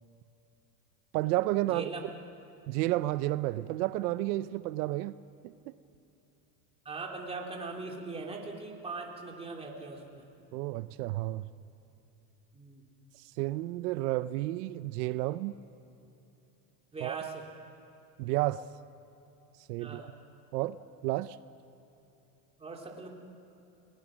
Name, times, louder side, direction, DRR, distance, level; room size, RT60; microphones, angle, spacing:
voice 1, 1.1-1.9 2.7-5.2 5.4-5.8 10.5-11.5 13.1-15.5 17.0-17.2 18.2-18.7 19.7-20.0 20.5-20.8 21.0-21.4, right 17 dB, 80° right, 0.7 m, -31 dB
voice 2, 1.7-2.0 6.8-10.2 12.5-12.8 16.9-17.4 19.8-20.1 22.6-23.1, right 3 dB, 10° right, 2.8 m, -40 dB
29.5 x 19.0 x 6.2 m
supercardioid pair, 145°, 47 cm